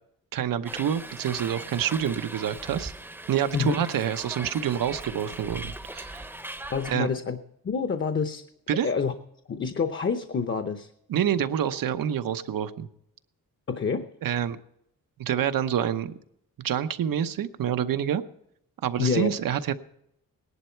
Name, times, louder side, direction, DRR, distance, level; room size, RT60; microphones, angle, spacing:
voice 1, 0.3-2.9 3.3-6.3 6.9-7.1 8.7-8.9 11.1-12.9 14.2-14.6 15.2-16.1 16.6-18.2 18.8-19.7, right 9 dB, 90° right, 10 dB, 0.9 m, -27 dB
Hiss, 0.6-6.9, right 1 dB, 5° right, 0.7 m, -40 dB
voice 2, 6.7-7.4 7.6-8.4 8.8-9.1 9.5-10.9 13.7-14.1 19.0-19.3, left 5 dB, 35° left, 9 dB, 0.8 m, -27 dB
18.0 x 11.0 x 4.5 m, 0.73 s
wide cardioid pair, 150°, 33 cm